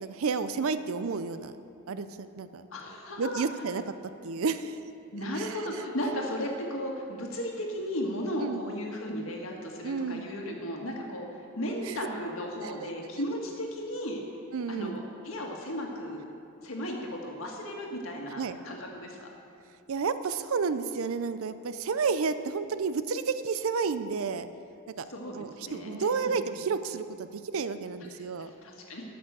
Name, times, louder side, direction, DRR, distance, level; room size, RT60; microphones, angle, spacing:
voice 1, 0.0-1.5 1.9-2.1 2.4-2.7 3.2-3.8 4.2-4.8 5.4-5.6 8.4-8.6 9.8-10.2 11.8-12.0 12.6-12.7 14.5-15.0 18.3-18.6 19.9-24.5 25.0-25.1 25.3-28.5, right 5 dB, 75° right, 12 dB, 0.5 m, -31 dB
voice 2, 2.7-3.4 5.1-11.3 11.6-14.2 14.7-16.2 16.6-19.3 25.1-26.3 28.6-29.0, equal, 70° left, 0 dB, 1.7 m, -35 dB
13.0 x 6.0 x 6.8 m, 2.7 s
head